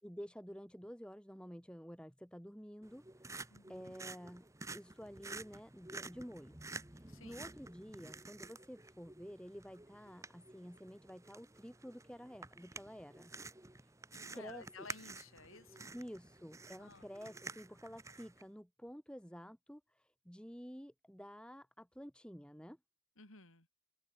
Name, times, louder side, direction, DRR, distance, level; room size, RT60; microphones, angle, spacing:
voice 1, 0.0-6.6 6.9-13.3 14.3-14.9 15.9-22.8, equal, 5° left, 6.2 m, -51 dB
sound 1, 2.8-18.4, right 3 dB, 15° right, 1.1 m, -51 dB
voice 2, 3.5-3.9 7.1-7.4 14.1-15.9 16.8-17.1 23.2-23.7, left 3 dB, 80° left, 5.6 m, -55 dB
open air
head